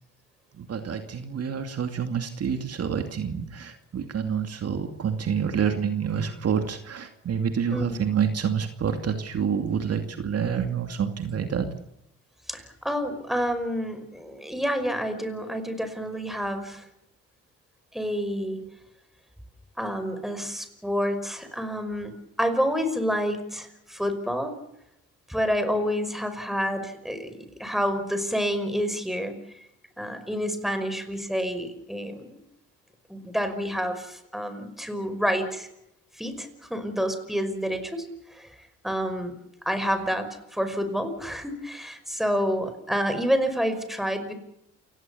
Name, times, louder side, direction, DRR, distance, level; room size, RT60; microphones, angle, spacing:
voice 1, 0.5-11.7, right 7 dB, 55° right, 6 dB, 2.5 m, -28 dB
voice 2, 12.5-16.9 17.9-18.7 19.8-24.6 25.3-29.7 30.0-32.4 33.1-35.7 36.2-39.3 39.7-44.3, equal, ahead, 9 dB, 5.5 m, -29 dB
29.0 x 17.5 x 7.1 m, 0.81 s
cardioid pair, 90°, 30 cm